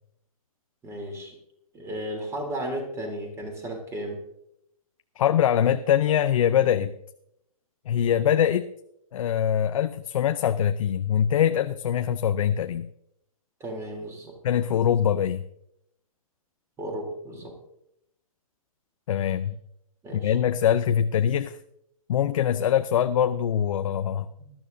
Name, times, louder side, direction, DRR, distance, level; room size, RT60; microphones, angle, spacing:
voice 1, 0.8-1.3 1.7-4.2 13.6-14.4 16.8-17.5 20.0-20.3 24.4-24.5, right 1 dB, 15° right, 3 dB, 3.2 m, -34 dB
voice 2, 5.2-6.9 7.9-8.7 9.1-12.9 14.4-15.4 19.1-19.6 20.1-21.6 22.1-24.3, left 9 dB, 65° left, 9 dB, 0.6 m, -23 dB
20.0 x 12.5 x 2.7 m, 0.77 s
hypercardioid pair, 135°, 19 cm